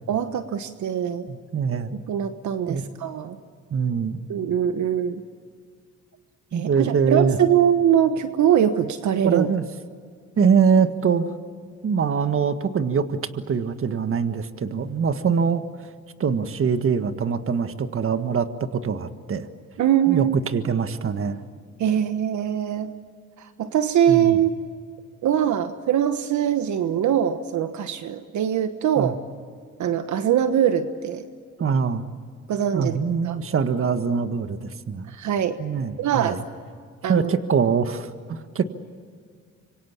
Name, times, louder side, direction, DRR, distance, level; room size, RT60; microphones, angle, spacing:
voice 1, 0.1-1.3 1.9-3.4 4.3-5.2 6.5-9.5 19.8-20.4 21.8-22.9 23.4-24.5 25.2-29.2 29.8-31.2 32.5-33.0 33.2-33.4 35.1-35.6 36.0-36.3 37.0-37.3, right 9 dB, 70° right, 9 dB, 1.3 m, -22 dB
voice 2, 1.3-2.0 2.7-2.8 3.7-4.2 6.5-7.4 9.2-9.6 10.4-11.2 11.8-15.6 16.2-19.5 20.1-21.4 24.1-24.4 29.0-29.1 31.6-32.0 32.7-35.1 35.6-36.4 37.1-38.6, right 6 dB, 45° right, 10 dB, 1.6 m, -23 dB
26.5 x 24.0 x 7.3 m, 2.1 s
cardioid pair, 90°, 30 cm